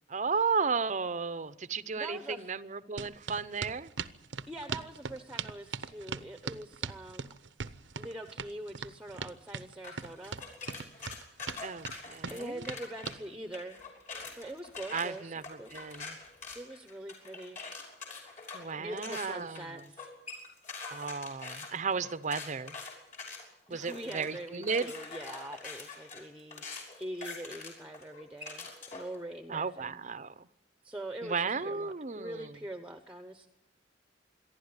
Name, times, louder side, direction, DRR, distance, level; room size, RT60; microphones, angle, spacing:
voice 1, 0.1-3.9 11.6-12.7 14.9-16.2 18.5-19.8 20.9-22.8 23.7-24.9 29.5-30.5 31.2-32.6, right 5 dB, 40° right, 0.7 m, -34 dB
voice 2, 1.9-2.5 4.5-7.3 8.0-10.4 12.3-13.9 14.3-15.7 16.5-17.6 18.8-20.1 23.7-26.6 27.0-30.0 30.8-33.5, right 1 dB, 5° right, 1.0 m, -43 dB
sound 1, 3.0-13.2, right 5 dB, 75° right, 0.8 m, -40 dB
sound 2, 9.8-13.1 13.5-29.1, left 4 dB, 40° left, 6.0 m, -44 dB
26.5 x 11.5 x 9.7 m
head